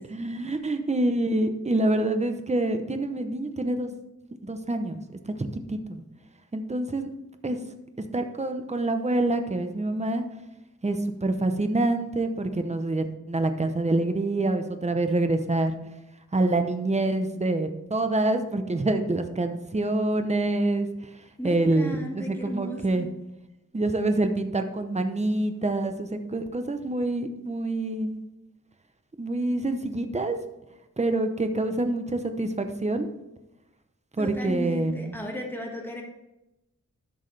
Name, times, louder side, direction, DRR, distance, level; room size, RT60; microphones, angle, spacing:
voice 1, 0.0-3.9 4.4-6.0 6.5-7.1 7.4-7.6 8.0-10.3 10.8-15.7 16.3-20.9 21.4-23.1 23.7-28.2 29.2-30.4 31.0-33.1 34.2-35.2, right 2 dB, 20° right, 7 dB, 0.8 m, -26 dB
voice 2, 21.4-23.1 34.2-36.0, equal, 5° left, 0 dB, 1.7 m, -35 dB
11.5 x 6.3 x 3.3 m, 0.94 s
wide cardioid pair, 110°, 31 cm